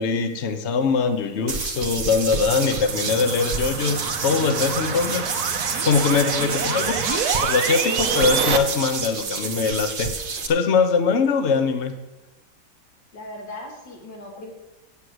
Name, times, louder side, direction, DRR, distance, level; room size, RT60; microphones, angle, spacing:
voice 1, 0.0-5.3 5.8-10.1 10.5-11.9, left 5 dB, 45° left, 9 dB, 1.1 m, -22 dB
sound 1, 1.5-10.5, right 4 dB, 40° right, 0.9 m, -29 dB
sound 2, 2.1-8.6, right 7 dB, 65° right, 1.3 m, -28 dB
voice 2, 6.4-6.9 13.1-14.5, left 2 dB, 85° left, -1 dB, 3.0 m, -38 dB
8.7 x 7.6 x 7.9 m, 1.0 s
omnidirectional pair, 1.9 m